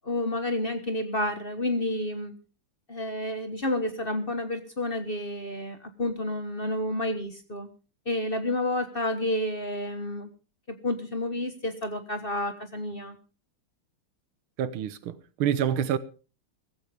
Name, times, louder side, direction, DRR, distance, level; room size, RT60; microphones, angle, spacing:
voice 1, 0.0-2.3 2.9-7.7 8.0-10.3 10.7-13.2, left 1 dB, 30° left, 1.3 m, -30 dB
voice 2, 14.6-16.0, right 9 dB, 85° right, 1.8 m, -27 dB
16.0 x 15.0 x 3.4 m
omnidirectional pair, 2.3 m